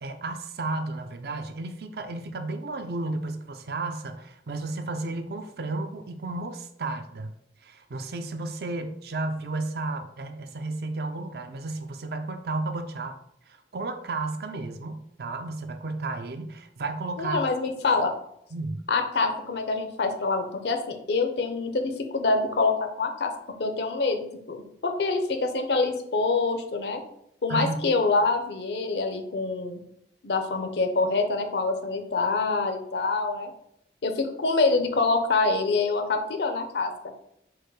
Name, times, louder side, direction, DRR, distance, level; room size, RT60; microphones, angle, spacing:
voice 1, 0.0-7.3 7.6-13.2 13.5-17.5 18.5-18.8 27.5-27.8, right 2 dB, 55° right, 7 dB, 0.4 m, -33 dB
voice 2, 17.2-18.1 18.9-23.3 23.6-27.0 27.4-29.8 30.2-33.5 34.0-37.1, left 3 dB, 70° left, 6 dB, 0.6 m, -26 dB
4.6 x 2.2 x 4.7 m, 0.74 s
head